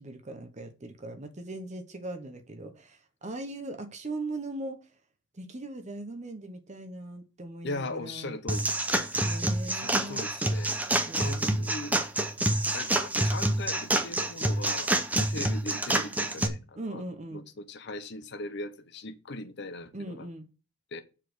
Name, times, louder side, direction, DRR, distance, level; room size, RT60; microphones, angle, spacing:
voice 1, 0.0-4.8 5.3-8.4 9.2-10.3 11.1-11.6 16.8-17.4 19.9-20.5, right 2 dB, 35° right, 0.9 m, -39 dB
voice 2, 7.6-8.7 9.7-10.8 11.1-12.0 12.7-17.0 17.3-20.3 20.9-21.0, left 2 dB, 60° left, 0.8 m, -39 dB
sound 1, 8.5-16.5, right 1 dB, 10° right, 0.7 m, -27 dB
7.3 x 4.1 x 6.7 m
head